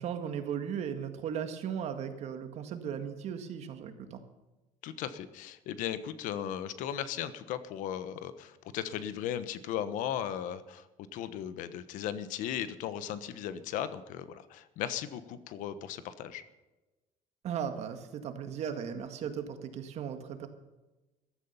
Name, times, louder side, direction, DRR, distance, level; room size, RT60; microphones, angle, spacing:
voice 1, 0.0-4.2 17.4-20.5, right 8 dB, 50° right, 7 dB, 1.8 m, -37 dB
voice 2, 4.8-10.8 11.1-16.4, left 10 dB, 70° left, 13 dB, 1.2 m, -37 dB
15.0 x 13.0 x 5.6 m, 1.1 s
cardioid pair, 155°, 14 cm